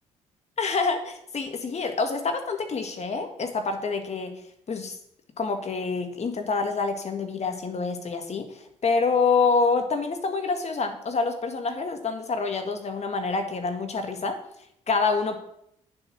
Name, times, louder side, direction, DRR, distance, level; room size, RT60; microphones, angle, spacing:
voice 1, 0.6-4.3 4.7-5.0 5.4-14.4 14.9-15.4, left 4 dB, 45° left, 6 dB, 1.9 m, -27 dB
9.0 x 7.4 x 6.1 m, 0.75 s
hypercardioid pair, 50°, 16 cm